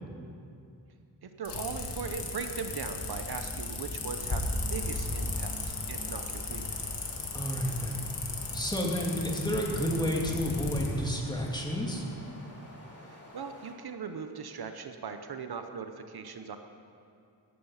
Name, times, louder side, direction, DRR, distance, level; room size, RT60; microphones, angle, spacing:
voice 1, 1.2-5.6 5.9-6.8 13.1-16.6, right 6 dB, 65° right, 7 dB, 0.9 m, -39 dB
sound 1, 1.4-10.9, left 3 dB, 80° left, 2.2 m, -35 dB
sound 2, 4.1-13.7, left 1 dB, 35° left, 3.0 m, -51 dB
voice 2, 7.3-8.0 8.5-12.0, equal, 10° left, -1 dB, 2.4 m, -31 dB
16.0 x 13.0 x 5.7 m, 2.5 s
wide cardioid pair, 110°, 41 cm